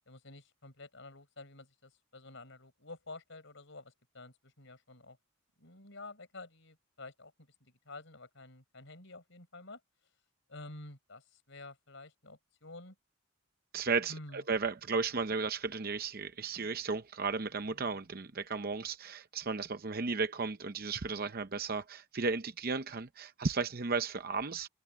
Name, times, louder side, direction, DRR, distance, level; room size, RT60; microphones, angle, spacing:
voice 1, 0.1-5.2 5.6-9.8 10.5-13.0 14.1-14.4 17.7-18.0, left 2 dB, 60° left, 5.5 m, -50 dB
voice 2, 13.7-24.7, right 4 dB, 45° right, 0.7 m, -34 dB
head